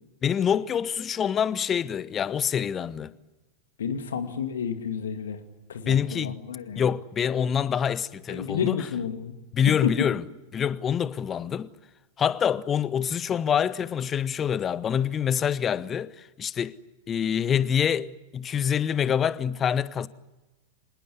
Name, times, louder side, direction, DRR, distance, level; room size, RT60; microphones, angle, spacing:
voice 1, 0.2-3.1 5.9-6.4 6.8-8.8 9.5-10.2 10.5-11.7 12.2-16.1 16.4-16.8 17.1-20.1, left 8 dB, 25° left, 0.9 m, -26 dB
voice 2, 3.8-5.4 5.7-6.9 8.3-9.4 9.8-10.1, left 7 dB, 65° left, 2.5 m, -30 dB
26.0 x 19.5 x 9.4 m
figure-of-eight pair, 90°, 0 cm